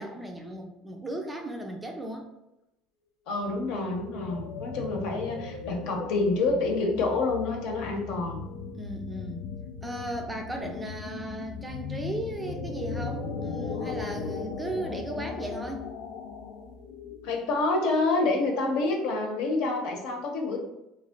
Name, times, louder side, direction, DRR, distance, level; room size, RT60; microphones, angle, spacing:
voice 1, 0.0-2.2 8.8-9.4 9.8-15.9, right 1 dB, 10° right, 2 dB, 0.4 m, -36 dB
voice 2, 3.3-8.4 17.2-20.6, left 3 dB, 65° left, 2 dB, 1.0 m, -27 dB
sound 1, 3.4-17.5, left 5 dB, 85° left, 0.6 m, -38 dB
3.6 x 3.1 x 3.7 m, 0.91 s
cardioid pair, 165°, 0 cm